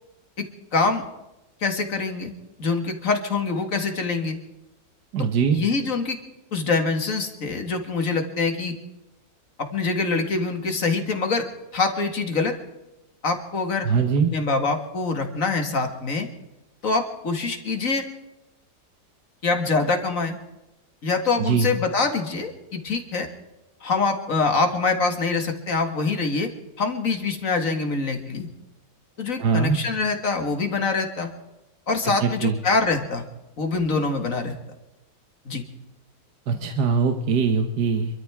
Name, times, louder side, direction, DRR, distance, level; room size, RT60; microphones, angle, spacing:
voice 1, 0.7-1.0 1.6-2.3 2.6-4.4 5.2-6.2 6.5-8.7 9.6-11.5 11.7-12.6 13.2-13.9 14.3-16.3 16.8-18.1 19.4-20.4 21.0-23.3 23.8-26.5 26.8-28.5 29.2-31.3 31.9-33.2 33.6-34.5 35.5-35.6, left 4 dB, 50° left, 5 dB, 2.2 m, -24 dB
voice 2, 5.1-5.6 13.8-14.3 21.4-21.7 29.4-29.8 32.0-32.6 36.5-38.2, right 5 dB, 70° right, 6 dB, 1.6 m, -22 dB
27.0 x 13.5 x 3.6 m, 0.96 s
omnidirectional pair, 1.8 m